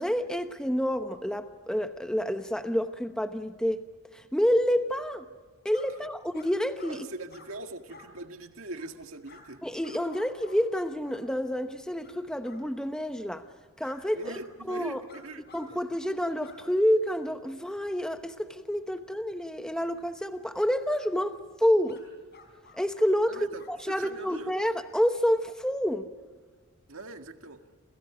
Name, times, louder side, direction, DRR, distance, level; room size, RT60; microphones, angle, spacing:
voice 1, 0.0-3.8 4.1-5.2 5.6-7.1 9.6-13.4 13.8-14.2 14.7-15.0 15.5-22.0 22.8-23.4 23.7-26.1, equal, 5° left, 0.9 m, -28 dB
sound 1, 5.7-5.9 6.3-6.5 6.8-7.0 7.3-7.5 7.9-8.1 8.7-8.9 9.2-9.4 9.8-10.6 11.0-11.2 12.0-12.2 12.4-12.6 13.8-14.0 14.2-14.4 15.1-15.7 15.9-16.1 16.4-16.6 21.9-22.0 22.3-23.1 23.5-23.8 24.3-24.5, left 4 dB, 50° left, 5.0 m, -53 dB
voice 2, 6.9-9.6 14.1-15.5 23.3-24.6 26.9-27.6, right 2 dB, 70° right, 1.9 m, -41 dB
29.0 x 27.5 x 5.0 m
head